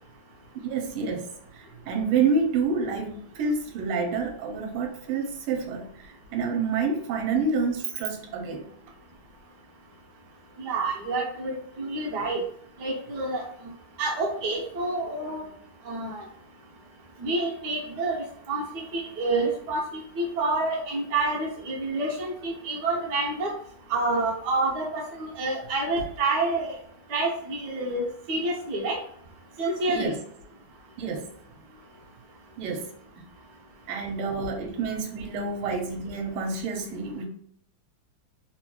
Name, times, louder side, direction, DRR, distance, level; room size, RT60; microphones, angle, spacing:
voice 1, 0.5-1.3 1.5-8.6 29.9-30.2 31.0-31.3 32.6-32.9 33.9-37.2, right 4 dB, 80° right, 3 dB, 1.5 m, -28 dB
voice 2, 10.6-12.4 12.8-13.4 14.0-15.5 15.9-16.2 17.2-23.5 23.9-26.7 27.1-29.0 29.6-30.1, right 2 dB, 65° right, -1 dB, 1.2 m, -28 dB
3.6 x 3.0 x 2.2 m, 0.63 s
omnidirectional pair, 2.4 m